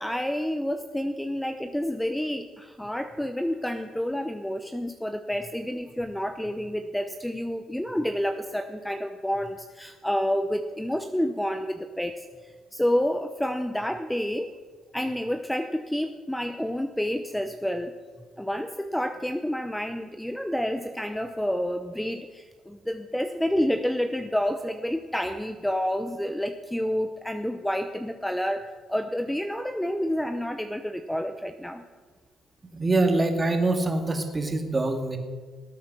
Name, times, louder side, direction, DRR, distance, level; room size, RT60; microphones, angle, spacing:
voice 1, 0.0-14.5 14.9-17.9 18.4-31.8, equal, 5° left, 8 dB, 0.7 m, -29 dB
voice 2, 32.7-35.2, right 2 dB, 25° right, 4 dB, 2.3 m, -24 dB
18.5 x 8.6 x 6.2 m, 1.5 s
cardioid pair, 85°, 0 cm